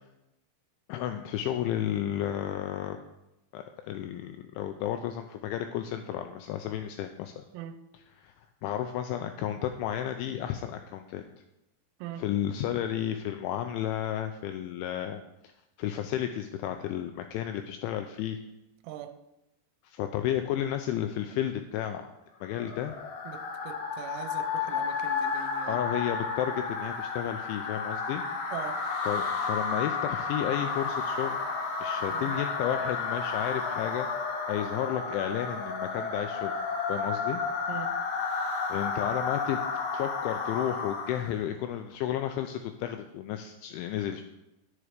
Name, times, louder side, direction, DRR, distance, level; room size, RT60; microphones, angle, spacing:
voice 1, 0.9-3.0 3.5-7.4 8.2-8.3 8.6-11.2 12.2-15.2 15.8-18.4 19.8-22.1 22.4-22.9 25.7-28.2 29.0-31.4 31.8-34.1 34.5-36.5 36.9-37.4 38.7-39.6 39.9-44.2, left 11 dB, 90° left, 7 dB, 2.7 m, -32 dB
voice 2, 18.8-19.2 23.3-25.8 26.4-26.6 28.5-28.8 32.1-32.4 37.7-37.9, right 11 dB, 90° right, 10 dB, 3.6 m, -41 dB
sound 1, 22.4-41.4, left 4 dB, 65° left, 2.6 m, -32 dB
10.0 x 9.5 x 5.0 m, 0.91 s
omnidirectional pair, 6.0 m